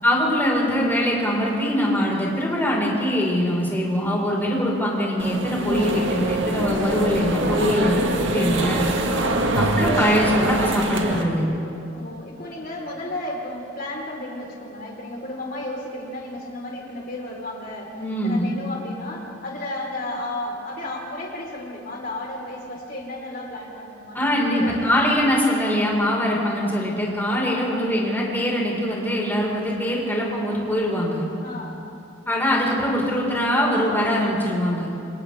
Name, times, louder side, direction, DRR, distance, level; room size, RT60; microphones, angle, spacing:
voice 1, 0.0-8.8 9.5-11.5 18.0-18.4 24.1-31.3 32.3-34.9, equal, 10° left, -4 dB, 5.1 m, -22 dB
sound 1, 5.2-11.2, right 2 dB, 70° right, 1.8 m, -24 dB
voice 2, 11.9-25.4 27.3-27.9 31.4-31.9, left 1 dB, 50° left, -1 dB, 4.5 m, -33 dB
29.5 x 27.5 x 3.6 m, 2.7 s
head